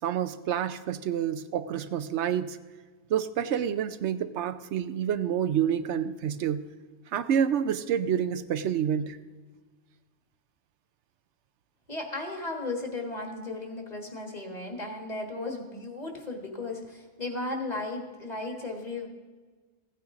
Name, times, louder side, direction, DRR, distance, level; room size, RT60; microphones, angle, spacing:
voice 1, 0.0-2.6 3.1-6.6 7.1-9.2, right 9 dB, 75° right, 12 dB, 0.9 m, -28 dB
voice 2, 11.9-19.1, left 2 dB, 35° left, 2 dB, 1.8 m, -35 dB
15.0 x 9.4 x 3.7 m, 1.4 s
omnidirectional pair, 1.2 m